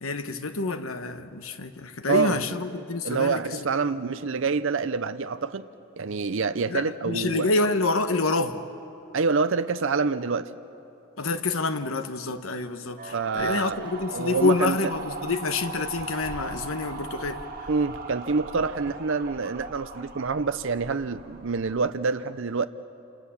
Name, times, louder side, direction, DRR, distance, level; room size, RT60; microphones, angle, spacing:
voice 1, 0.0-3.6 6.7-8.6 11.2-17.4, left 3 dB, 70° left, 9 dB, 1.2 m, -27 dB
voice 2, 3.0-5.6 6.0-7.5 9.1-10.5 13.1-13.8 14.1-14.8 17.7-22.7, right 4 dB, 60° right, 11 dB, 0.6 m, -26 dB
sound 1, 13.0-22.0, right 3 dB, 40° right, 2.4 m, -39 dB
28.0 x 27.0 x 7.2 m, 2.9 s
head